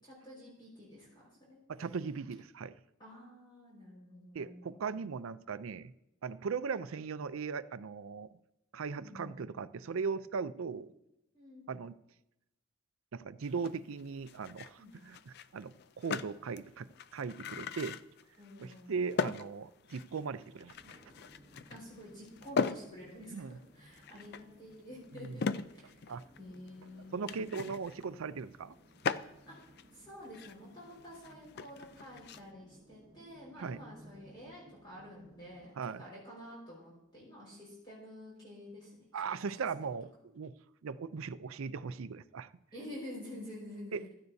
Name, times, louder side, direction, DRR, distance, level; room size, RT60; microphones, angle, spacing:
voice 1, 0.0-1.2 1.5-1.6 3.0-5.1 8.8-9.4 11.3-11.7 14.8-14.9 18.4-19.0 21.7-27.5 29.5-29.6 29.9-39.9 42.7-44.1, left 1 dB, 20° left, 4.8 m, -50 dB
voice 2, 1.7-2.7 4.3-5.9 6.2-8.3 8.7-10.9 11.7-11.9 13.1-18.0 18.6-20.9 23.3-23.5 25.1-25.3 26.1-26.2 27.1-28.7 33.6-33.8 35.8-36.0 39.1-40.1 40.3-40.5 40.8-42.5 43.9-44.0, right 5 dB, 70° right, 0.4 m, -38 dB
sound 1, 13.4-32.5, left 5 dB, 50° left, 0.4 m, -41 dB
sound 2, 20.7-35.7, right 1 dB, 25° right, 4.7 m, -60 dB
16.5 x 12.5 x 2.7 m
head